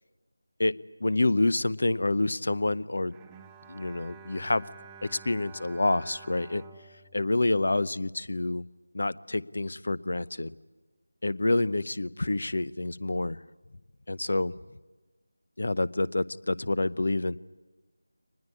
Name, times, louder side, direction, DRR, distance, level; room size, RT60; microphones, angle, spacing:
voice 1, 1.0-3.1 3.7-4.6 5.0-6.6 7.1-8.6 8.9-10.5 11.2-13.4 14.1-14.5 15.6-17.4, left 2 dB, 60° left, 19 dB, 0.7 m, -27 dB
Bowed string instrument, 3.1-8.4, right 6 dB, 10° right, 0.9 m, -51 dB
23.5 x 20.0 x 9.6 m, 1.2 s
figure-of-eight pair, 170°, 0 cm